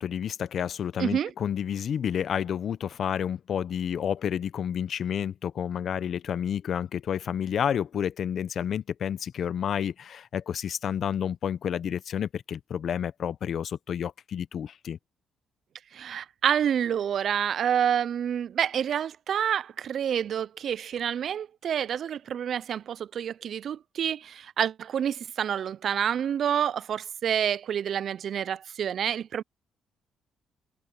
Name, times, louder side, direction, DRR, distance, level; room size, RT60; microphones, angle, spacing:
voice 1, 0.0-15.0, left 8 dB, 60° left, 0.7 m, -30 dB
voice 2, 1.0-1.3 15.9-29.4, right 9 dB, 60° right, 0.3 m, -28 dB
cardioid pair, 90°, 0 cm